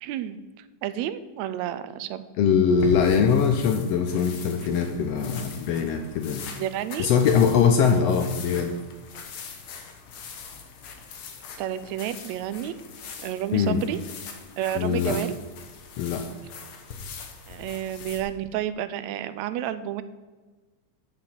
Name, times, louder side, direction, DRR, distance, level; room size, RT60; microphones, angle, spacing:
voice 1, 0.0-2.2 6.6-7.1 11.6-12.7 13.2-14.0 14.6-15.4 17.5-20.0, right 11 dB, 80° right, 13 dB, 1.7 m, -30 dB
voice 2, 2.4-6.4 7.0-8.7 13.5-13.8 14.7-15.2 16.0-16.2, left 6 dB, 80° left, 6 dB, 1.5 m, -22 dB
sound 1, 2.7-18.2, left 5 dB, 60° left, 1.6 m, -41 dB
7.0 x 5.7 x 7.5 m, 1.3 s
omnidirectional pair, 3.4 m